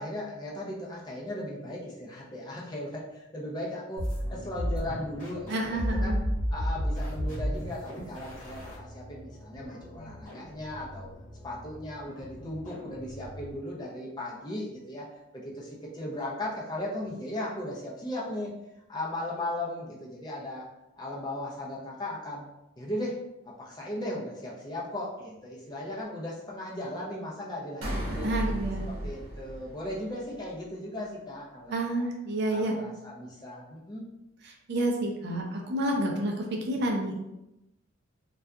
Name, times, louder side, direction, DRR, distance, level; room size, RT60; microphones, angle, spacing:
voice 1, 0.0-6.2 6.5-11.1 11.4-15.1 15.3-18.5 18.9-20.7 21.0-22.5 22.8-23.2 23.6-28.3 28.9-31.9 32.5-34.1, left 1 dB, 20° left, -4 dB, 0.5 m, -37 dB
sound 1, 4.0-13.7, equal, 40° left, 1.1 m, -34 dB
voice 2, 5.5-6.2 28.2-28.9 31.7-32.7 34.4-37.2, right 1 dB, 50° right, 1 dB, 0.4 m, -29 dB
sound 2, 27.8-30.4, equal, 85° right, 0.7 m, -34 dB
2.6 x 2.3 x 2.3 m, 0.90 s
head